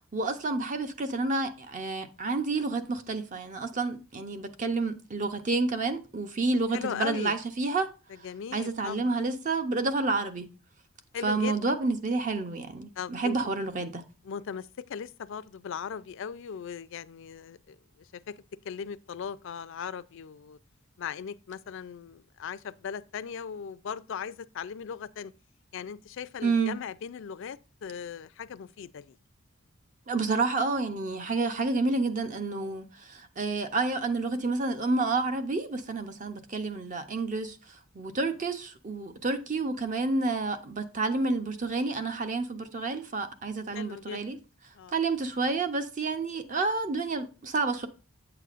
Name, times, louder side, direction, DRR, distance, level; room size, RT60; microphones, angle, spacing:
voice 1, 0.0-7.9 8.5-10.5 11.2-14.0 26.4-26.8 30.1-44.4 44.9-47.9, right 3 dB, 40° right, 0.7 m, -29 dB
voice 2, 6.7-7.4 8.1-9.2 11.1-11.6 13.0-13.4 14.2-18.4 18.6-20.6 21.0-25.3 25.7-29.2 31.1-31.2 43.7-44.2 44.7-45.0, left 7 dB, 60° left, 0.4 m, -38 dB
8.3 x 6.8 x 2.5 m
head